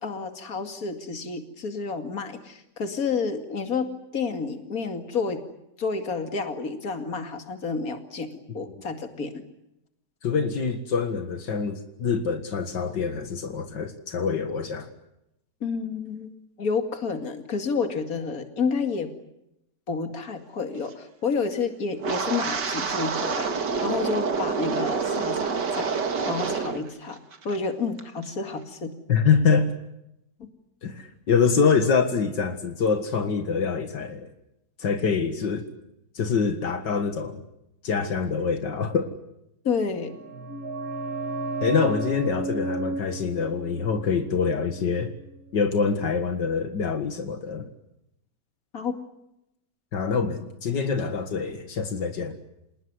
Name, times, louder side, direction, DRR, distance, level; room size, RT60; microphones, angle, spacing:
voice 1, 0.0-5.4 5.8-9.3 15.6-16.3 16.6-19.1 19.9-26.0 26.2-28.9 39.6-40.1 48.7-49.0, left 5 dB, 55° left, 7 dB, 2.8 m, -30 dB
voice 2, 10.2-14.9 29.1-29.7 30.8-34.3 34.8-35.7 36.2-37.4 37.8-39.1 41.6-45.1 45.5-47.7 49.9-52.3, left 5 dB, 80° left, 8 dB, 2.5 m, -25 dB
Wind, 22.0-26.9 27.1-27.6 28.0-28.3, right 5 dB, 75° right, 2.5 m, -27 dB
sound 1, 39.9-45.4 45.6-45.7, right 2 dB, 55° right, 2.2 m, -33 dB
27.5 x 19.5 x 9.7 m, 0.85 s
omnidirectional pair, 1.9 m